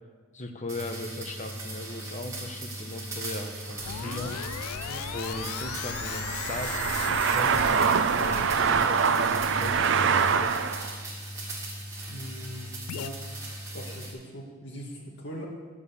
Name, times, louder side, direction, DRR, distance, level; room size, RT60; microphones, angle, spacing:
voice 1, 0.3-4.3 5.1-7.6 8.2-10.6, left 1 dB, 30° left, 4 dB, 1.0 m, -38 dB
sound 1, 0.7-14.1, right 1 dB, 15° right, 2.3 m, -39 dB
sound 2, 3.8-9.1 12.9-13.1, left 12 dB, 85° left, 0.3 m, -38 dB
sound 3, 3.8-11.0, right 6 dB, 55° right, 0.5 m, -26 dB
voice 2, 12.1-13.3 13.7-15.5, equal, 50° left, -1 dB, 2.1 m, -41 dB
10.5 x 7.2 x 7.1 m, 1.5 s
head